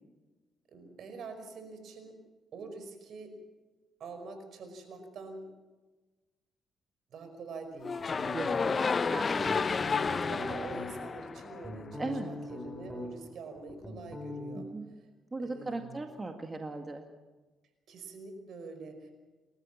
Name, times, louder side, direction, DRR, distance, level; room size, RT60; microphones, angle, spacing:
voice 1, 0.7-2.2 2.5-3.4 4.0-5.5 7.1-8.0 9.5-14.7 15.4-16.1 17.9-19.1, right 3 dB, 65° right, 7 dB, 5.3 m, -45 dB
sound 1, 7.8-12.0, left 5 dB, 35° left, 0.8 m, -31 dB
sound 2, 8.1-9.0 9.4-10.9 11.4-13.3 13.6-14.6, left 2 dB, 5° left, 5.5 m, -41 dB
voice 2, 8.3-9.5 12.0-12.3 14.6-14.9 15.3-17.1, right 3 dB, 25° right, 4 dB, 2.0 m, -38 dB
29.0 x 13.5 x 7.4 m, 1.2 s
cardioid pair, 90°, 0 cm